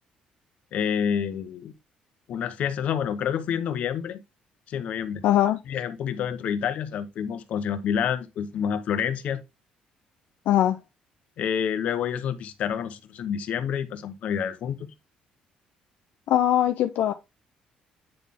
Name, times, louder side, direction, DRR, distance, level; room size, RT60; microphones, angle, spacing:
voice 1, 0.7-1.7 2.3-4.2 4.7-5.2 5.7-9.4 11.4-14.9, left 8 dB, 55° left, 0.8 m, -28 dB
voice 2, 5.2-5.6 10.5-10.8 16.3-17.1, left 12 dB, 75° left, 0.5 m, -21 dB
9.0 x 4.0 x 3.6 m
cardioid pair, 155°, 3 cm